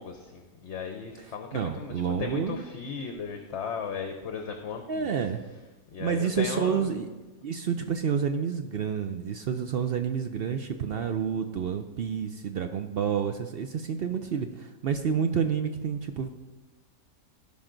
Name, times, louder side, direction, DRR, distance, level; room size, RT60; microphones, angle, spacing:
voice 1, 0.0-5.1 5.9-7.0, left 6 dB, 55° left, 5 dB, 1.0 m, -36 dB
voice 2, 1.5-2.6 4.9-5.4 6.0-7.1 7.4-16.3, right 7 dB, 60° right, 7 dB, 0.6 m, -29 dB
16.0 x 5.5 x 3.9 m, 1.2 s
omnidirectional pair, 1.5 m